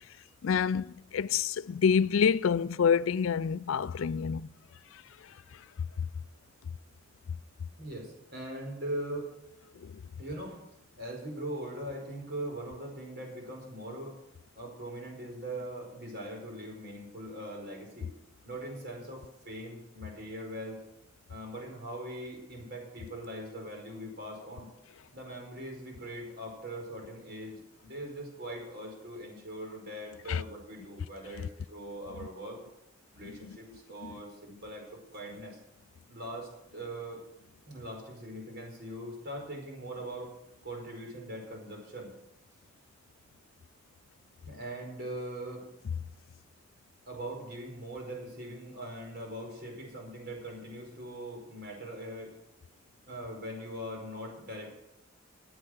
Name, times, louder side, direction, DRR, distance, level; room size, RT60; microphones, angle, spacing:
voice 1, 0.4-4.5 9.8-9.9 30.3-30.4 33.2-33.3 34.0-34.1, left 6 dB, 70° left, 0.4 m, -27 dB
voice 2, 7.8-9.3 10.2-10.6 11.0-14.2 14.5-18.1 18.4-20.8 21.3-24.7 25.1-32.6 33.1-34.9 35.1-35.6 36.1-37.2 37.7-40.3 40.6-42.1 44.4-45.6 47.1-52.3 53.1-54.7, right 1 dB, 50° right, 4.9 m, -41 dB
14.5 x 8.8 x 6.4 m
head